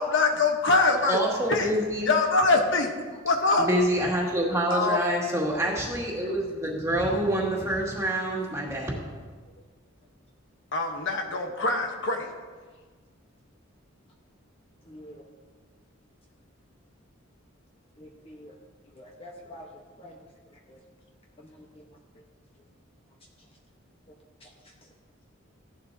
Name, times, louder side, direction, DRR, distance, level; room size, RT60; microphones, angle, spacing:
voice 1, 0.0-1.2 1.5-1.7 2.1-2.9 3.2-3.7 4.7-5.0 10.7-12.3, left 3 dB, 65° left, 4 dB, 1.1 m, -23 dB
voice 2, 1.1-2.1 3.6-8.9, right 1 dB, 15° right, -3 dB, 2.2 m, -26 dB
voice 3, 14.9-15.3 18.0-18.6 18.9-19.7 20.0-20.2 20.7-20.8 21.4-21.8 24.4-24.5, equal, 30° left, -1 dB, 1.1 m, -46 dB
16.0 x 11.0 x 2.8 m, 1.5 s
head